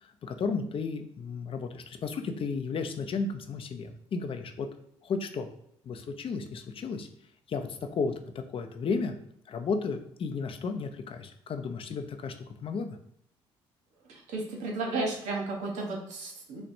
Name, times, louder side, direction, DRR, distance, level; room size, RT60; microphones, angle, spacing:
voice 1, 0.0-4.7 5.0-5.5 5.8-7.1 7.5-9.2 9.5-13.0, left 4 dB, 45° left, 6 dB, 0.5 m, -33 dB
voice 2, 14.1-16.6, right 2 dB, 75° right, 0 dB, 0.8 m, -33 dB
4.2 x 2.1 x 2.6 m, 0.72 s
supercardioid pair, 60°, 12 cm